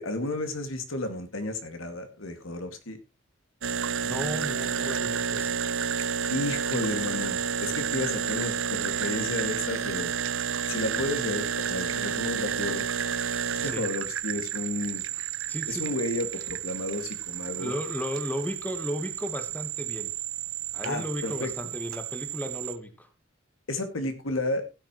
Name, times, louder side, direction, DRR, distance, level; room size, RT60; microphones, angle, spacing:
voice 1, 0.0-3.0 6.3-10.1 10.7-12.8 13.6-15.0 15.7-17.8 20.8-21.5 23.7-24.6, left 2 dB, 85° left, 2.2 m, -32 dB
sound 1, 3.6-22.8, right 8 dB, 80° right, 0.8 m, -31 dB
voice 2, 4.0-5.7 13.6-13.9 15.5-15.9 17.5-20.1 20.7-23.1, equal, 10° left, 1.4 m, -35 dB
15.5 x 9.2 x 3.1 m
head